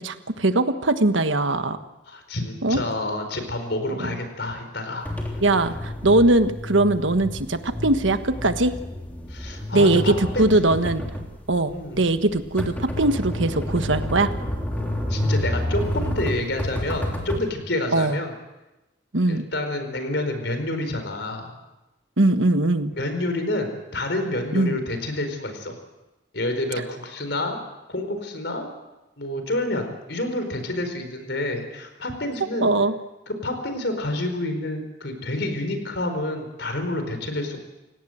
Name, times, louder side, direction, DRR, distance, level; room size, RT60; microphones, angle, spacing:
voice 1, 0.0-1.8 2.6-2.8 4.0-4.2 5.4-8.7 9.7-11.0 11.5-14.3 17.9-18.2 19.1-19.5 22.2-22.9 24.5-24.8 32.6-32.9, right 2 dB, 85° right, 9 dB, 1.4 m, -21 dB
voice 2, 2.1-5.1 9.3-10.9 11.7-12.0 15.1-18.3 19.3-21.5 23.0-25.7 26.3-27.6 27.9-28.7 29.2-32.7 33.3-37.6, left 1 dB, 65° left, 7 dB, 4.6 m, -28 dB
sound 1, 5.0-17.4, left 1 dB, 10° left, 3.3 m, -29 dB
29.5 x 17.5 x 7.9 m, 1.0 s
head